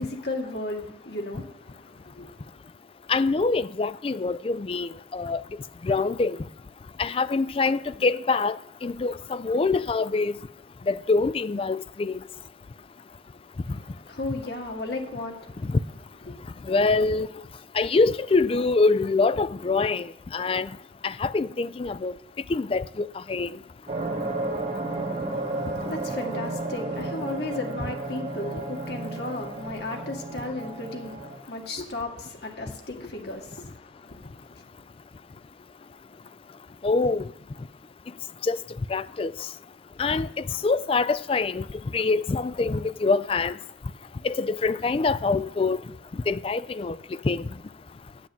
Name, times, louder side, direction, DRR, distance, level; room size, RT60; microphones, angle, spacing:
voice 1, 0.0-2.5 13.6-15.8 16.3-16.4 25.3-34.6, left 2 dB, 55° left, 1.9 m, -35 dB
voice 2, 3.1-5.4 5.8-6.4 7.0-8.6 8.8-10.3 10.9-12.2 15.6-15.8 16.7-17.3 17.7-20.7 21.0-22.1 22.5-23.6 36.8-37.3 38.4-38.6 38.9-39.3 40.0-41.6 41.9-43.5 44.2-45.8 46.3-47.0 47.2-47.4, left 3 dB, 30° left, 0.3 m, -25 dB
sound 1, 23.9-31.4, right 2 dB, 35° right, 2.2 m, -32 dB
9.4 x 7.2 x 9.1 m
head